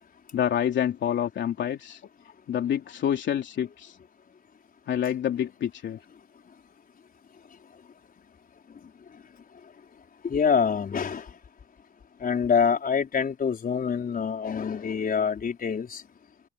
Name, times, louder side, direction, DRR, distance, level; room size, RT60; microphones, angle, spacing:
voice 1, 0.3-2.0 2.5-4.0 4.9-6.0, left 9 dB, 65° left, 3.3 m, -27 dB
voice 2, 10.2-11.3 12.2-16.0, left 6 dB, 45° left, 4.7 m, -25 dB
cardioid pair, 90°, 20 cm